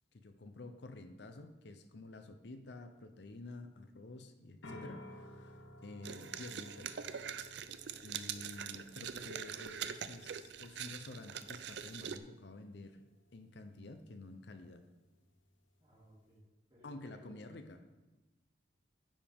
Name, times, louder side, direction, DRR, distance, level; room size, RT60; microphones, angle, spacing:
voice 1, 0.1-7.1 8.0-13.0 13.3-14.8 16.8-17.8, left 2 dB, 60° left, 8 dB, 0.7 m, -50 dB
sound 1, 4.6-16.4, left 1 dB, 85° left, 1.2 m, -57 dB
sound 2, 6.0-12.2, right 8 dB, 65° right, 0.5 m, -43 dB
voice 2, 15.8-16.4 16.7-17.6, left 1 dB, 25° right, -8 dB, 3.4 m, -61 dB
10.0 x 7.5 x 3.5 m, 1.1 s
head